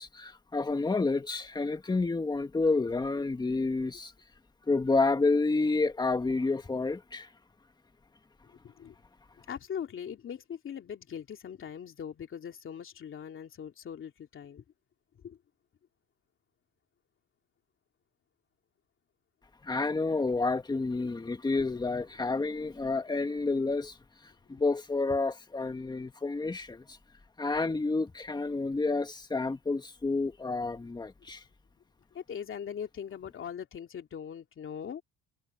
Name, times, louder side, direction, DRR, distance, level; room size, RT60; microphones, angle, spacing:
voice 1, 0.0-4.1 4.7-7.3 19.6-24.0 24.2-27.0 27.4-31.4, left 3 dB, 15° left, 1.7 m, -29 dB
voice 2, 8.4-9.0 9.4-14.6 15.2-15.4 24.5-24.6 32.1-35.0, left 8 dB, 40° left, 2.8 m, -41 dB
cardioid pair, 130°, 33 cm